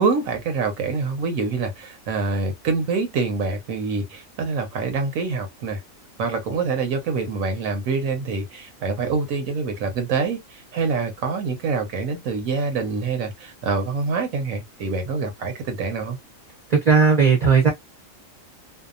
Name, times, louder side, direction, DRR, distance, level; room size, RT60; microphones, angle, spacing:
voice 1, 0.0-5.8 6.2-16.2, right 4 dB, 85° right, 1.2 m, -25 dB
voice 2, 16.7-17.7, right 5 dB, 40° right, 0.7 m, -16 dB
2.7 x 2.1 x 2.4 m
omnidirectional pair, 1.4 m